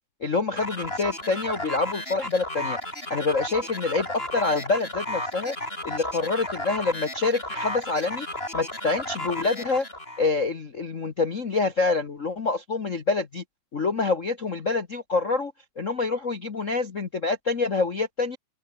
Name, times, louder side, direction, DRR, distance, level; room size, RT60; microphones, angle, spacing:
voice 1, 0.2-2.8 3.1-5.5 5.8-8.3 8.5-9.8 10.2-13.4 13.7-18.4, left 3 dB, 55° left, 0.8 m, -26 dB
sound 1, 0.6-10.3, left 1 dB, 15° left, 7.8 m, -33 dB
open air
omnidirectional pair, 3.5 m